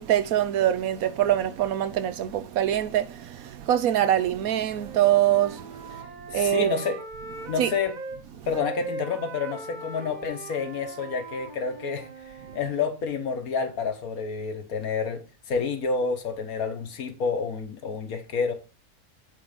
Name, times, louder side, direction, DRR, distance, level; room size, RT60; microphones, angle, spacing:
voice 1, 0.0-6.0 6.3-6.8 7.4-7.7, right 11 dB, 85° right, 1.2 m, -24 dB
Wind instrument woodwind instrument, 4.7-8.2 8.5-12.7, right 3 dB, 35° right, 1.1 m, -40 dB
voice 2, 6.3-7.0 7.5-7.9 8.5-12.1 12.5-15.2 15.5-18.5, left 5 dB, 85° left, 1.7 m, -29 dB
8.4 x 3.8 x 5.0 m
omnidirectional pair, 1.5 m